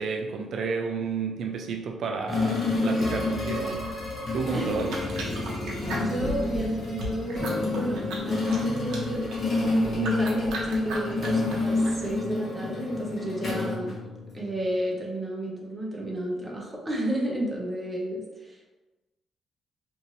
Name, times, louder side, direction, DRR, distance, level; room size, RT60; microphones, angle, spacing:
voice 1, 0.0-3.9 4.3-4.9, right 5 dB, 65° right, 2 dB, 0.3 m, -31 dB
sound 1, 2.3-14.6, left 3 dB, 45° left, 0.9 m, -29 dB
voice 2, 4.5-4.9 6.0-14.0 14.3-18.7, right 1 dB, 20° right, -2 dB, 0.8 m, -32 dB
sound 2, 4.7-12.2, right 1 dB, 80° right, 0.8 m, -38 dB
2.6 x 2.5 x 3.0 m, 1.1 s
cardioid pair, 90°, 0 cm